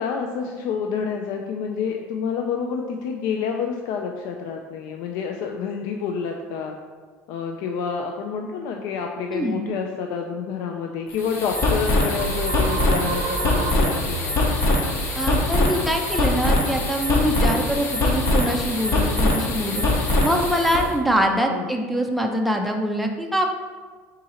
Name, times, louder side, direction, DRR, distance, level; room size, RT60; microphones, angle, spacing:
voice 1, 0.0-6.8 7.3-14.6 21.5-21.7, left 6 dB, 70° left, 3 dB, 0.3 m, -28 dB
voice 2, 9.3-9.6 15.2-19.8 20.2-23.5, equal, ahead, 2 dB, 0.4 m, -24 dB
sound 1, 11.1-20.9, left 2 dB, 50° left, 0.9 m, -22 dB
sound 2, 12.2-17.5, right 6 dB, 85° right, 0.4 m, -33 dB
3.7 x 2.8 x 4.2 m, 1.5 s
supercardioid pair, 110°, 6 cm